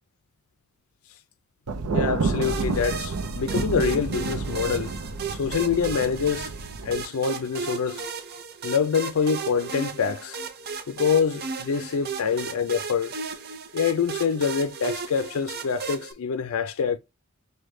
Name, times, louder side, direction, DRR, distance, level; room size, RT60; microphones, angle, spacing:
Thunder, 1.7-7.0, right 3 dB, 90° right, 0.6 m, -29 dB
voice 1, 1.9-4.9 5.3-6.5 6.8-8.1 8.6-10.4 10.9-13.1 13.7-17.0, left 6 dB, 75° left, 0.4 m, -25 dB
sound 1, 2.4-16.1, right 5 dB, 45° right, 0.6 m, -35 dB
6.4 x 2.2 x 3.1 m
head